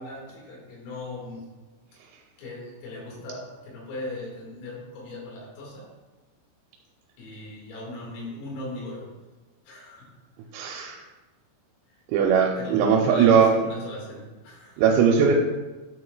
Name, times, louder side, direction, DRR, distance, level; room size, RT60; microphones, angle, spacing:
voice 1, 0.0-1.5 2.4-5.9 7.2-9.1 9.7-10.1 12.6-14.9, left 2 dB, 90° left, -3 dB, 4.7 m, -38 dB
voice 2, 10.5-11.0 12.1-13.5 14.8-15.3, right 7 dB, 85° right, 0 dB, 3.3 m, -19 dB
11.0 x 6.1 x 2.3 m, 1.2 s
omnidirectional pair, 5.9 m